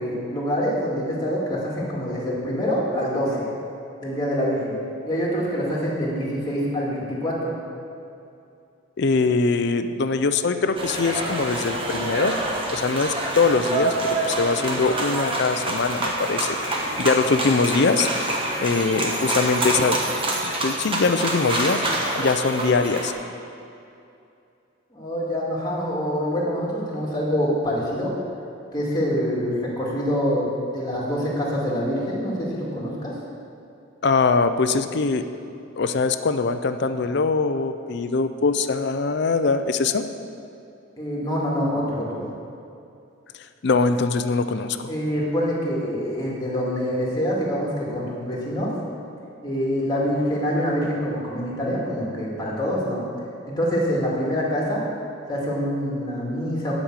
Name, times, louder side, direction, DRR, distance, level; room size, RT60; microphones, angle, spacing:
voice 1, 0.0-3.4 4.0-4.7 5.1-7.5 24.9-28.1 28.7-30.4 30.7-33.1 41.0-42.2 44.9-48.7 49.4-53.0 53.5-54.8 55.3-56.7, equal, 20° left, -5 dB, 2.0 m, -25 dB
voice 2, 9.0-12.4 12.7-16.5 17.0-18.1 18.6-20.0 20.4-21.8 22.1-23.1 34.0-35.3 35.8-40.0 43.6-44.9, left 4 dB, 55° left, 9 dB, 0.5 m, -22 dB
sound 1, 10.8-23.1, right 1 dB, 25° right, 1.1 m, -26 dB
10.0 x 5.2 x 7.4 m, 2.6 s
head